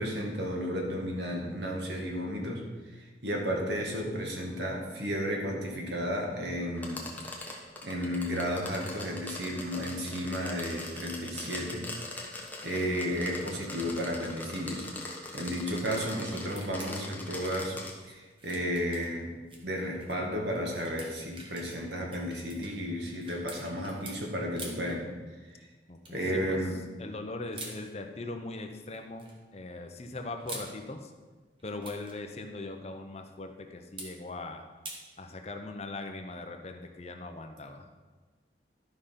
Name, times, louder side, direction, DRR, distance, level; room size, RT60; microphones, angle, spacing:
voice 1, 0.0-2.6 2.9-7.1 7.4-11.9 12.1-12.3 12.6-17.8 18.1-19.3 19.6-25.1 26.1-26.8, equal, 70° right, 0 dB, 1.9 m, -33 dB
sound 1, 6.8-17.9, left 2 dB, 10° left, 1.1 m, -42 dB
sound 2, 16.5-17.2 17.5-19.6 20.0-20.2 20.6-24.2 24.6-24.9 26.1-26.4 27.5-27.8 28.9-29.4 30.2-30.7 31.6-32.2 34.0-34.1 34.9-35.0, right 2 dB, 30° right, 1.4 m, -45 dB
voice 2, 25.9-26.6 27.0-31.1 31.6-34.7 35.2-37.9, left 2 dB, 35° left, 5 dB, 0.7 m, -40 dB
12.0 x 5.1 x 5.7 m, 1.3 s
head